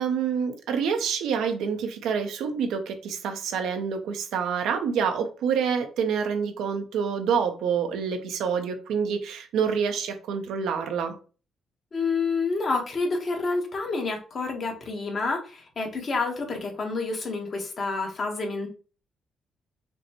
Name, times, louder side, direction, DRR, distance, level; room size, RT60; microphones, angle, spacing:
voice 1, 0.0-11.1, right 6 dB, 80° right, 5 dB, 0.7 m, -27 dB
voice 2, 11.9-18.7, left 3 dB, 50° left, 2 dB, 1.2 m, -28 dB
5.2 x 2.2 x 2.9 m, 0.36 s
cardioid pair, 85°, 0 cm